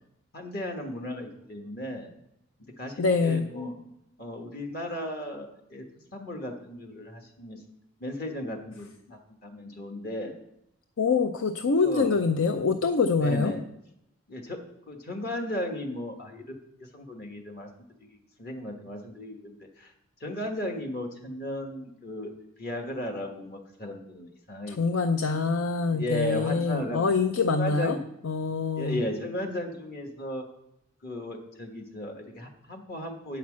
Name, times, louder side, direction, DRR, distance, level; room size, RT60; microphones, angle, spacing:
voice 1, 0.3-2.1 2.8-3.7 4.2-5.9 6.1-7.6 8.0-10.3 11.8-12.1 13.1-13.6 14.3-14.6 14.9-17.7 18.4-19.9 20.2-22.3 22.6-25.0 25.9-27.0 27.4-28.0 28.8-30.4 31.0-33.4, left 1 dB, 45° left, 3 dB, 1.3 m, -35 dB
voice 2, 3.0-3.5 11.0-13.5 24.7-28.0 28.2-29.0, left 4 dB, 80° left, 8 dB, 0.5 m, -25 dB
8.5 x 5.8 x 7.3 m, 0.82 s
head